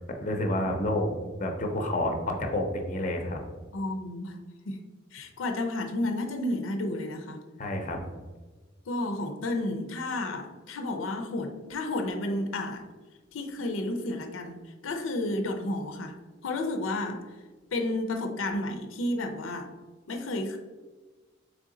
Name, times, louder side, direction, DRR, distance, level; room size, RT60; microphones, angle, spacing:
voice 1, 0.2-1.1 1.4-3.4 7.6-8.0, left 1 dB, 40° left, 4 dB, 0.6 m, -29 dB
voice 2, 3.7-4.4 4.7-4.8 5.1-7.4 8.9-12.9 13.3-16.1 16.4-17.3 17.7-19.7 20.1-20.6, left 2 dB, 90° left, 6 dB, 0.5 m, -31 dB
3.7 x 3.4 x 3.8 m, 1.3 s
head